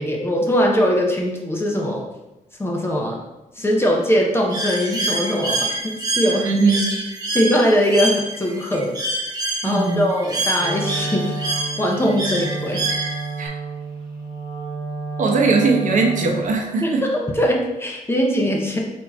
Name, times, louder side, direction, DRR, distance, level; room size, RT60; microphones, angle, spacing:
voice 1, 0.0-2.0 2.6-3.2 3.5-6.5 7.3-8.9 9.6-11.4 11.8-12.8 16.8-18.8, equal, 15° left, -1 dB, 0.7 m, -21 dB
Bird, 4.5-13.5, right 2 dB, 25° right, 0.8 m, -26 dB
voice 2, 6.4-6.9 9.6-10.0 13.4-13.5 15.2-17.0, right 3 dB, 60° right, 1 dB, 0.9 m, -19 dB
Wind instrument woodwind instrument, 10.5-16.6, right 4 dB, 35° left, 1.3 m, -30 dB
4.3 x 2.8 x 4.3 m, 1.0 s
wide cardioid pair, 125°, 14 cm